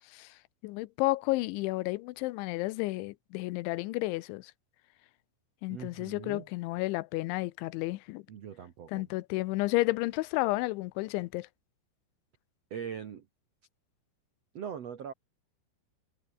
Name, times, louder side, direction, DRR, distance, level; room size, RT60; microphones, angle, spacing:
voice 1, 0.6-4.5 5.6-8.2 8.9-11.5, left 20 dB, 85° left, 3.1 m, -31 dB
voice 2, 5.7-6.5 8.3-9.1 12.7-13.2 14.5-15.1, right 8 dB, 75° right, 1.5 m, -41 dB
omnidirectional pair, 5.3 m